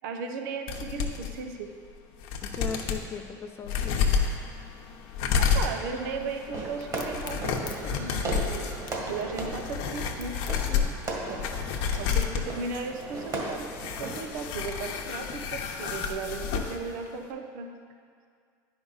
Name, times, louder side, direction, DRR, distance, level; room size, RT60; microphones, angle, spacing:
voice 1, 0.0-1.7 5.5-8.7 9.0-10.4 11.3-11.4 11.9-13.7 14.0-17.7, right 4 dB, 80° right, 5 dB, 0.7 m, -36 dB
sound 1, 0.7-1.3 1.8-1.9 2.2-3.0 3.6-16.8 17.1-17.2, left 6 dB, 65° left, 0.9 m, -31 dB
voice 2, 2.4-4.1 10.4-11.0, left 5 dB, 25° left, 4 dB, 0.7 m, -38 dB
Fireworks, 6.5-14.6, right 2 dB, 35° right, 1.7 m, -37 dB
Crack, 6.8-12.5, left 10 dB, 90° left, 0.6 m, -47 dB
10.0 x 5.2 x 4.0 m, 2.2 s
supercardioid pair, 100°, 10 cm